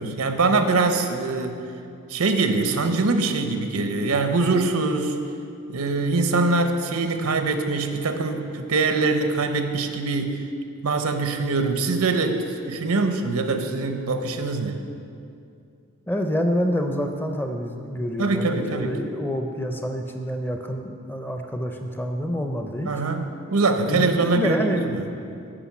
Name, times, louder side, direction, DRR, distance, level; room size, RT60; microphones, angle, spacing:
voice 1, 0.0-1.6 2.1-5.2 5.7-10.4 10.8-14.8 18.2-18.9 22.8-25.1, right 3 dB, 85° right, 7 dB, 0.8 m, -23 dB
voice 2, 16.1-22.9 23.8-25.5, equal, 10° left, 4 dB, 0.5 m, -27 dB
10.0 x 5.5 x 7.2 m, 2.5 s
head